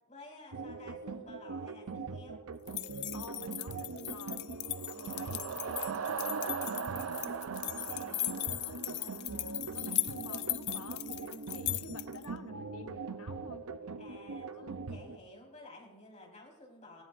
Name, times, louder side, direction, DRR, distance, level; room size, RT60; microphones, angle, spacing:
voice 1, 0.1-2.4 4.9-5.2 7.9-8.4 14.0-17.0, left 2 dB, 30° left, -1 dB, 4.7 m, -53 dB
sound 1, 0.5-15.2, right 4 dB, 90° right, 0.8 m, -42 dB
sound 2, 2.7-12.2, left 16 dB, 50° left, 0.4 m, -38 dB
voice 2, 3.1-4.9 5.1-8.3 8.6-13.6 14.4-14.8, left 4 dB, 85° left, 7 dB, 1.1 m, -51 dB
sound 3, 4.5-9.4, right 7 dB, 70° right, 0.4 m, -40 dB
18.5 x 16.5 x 2.6 m, 1.2 s
head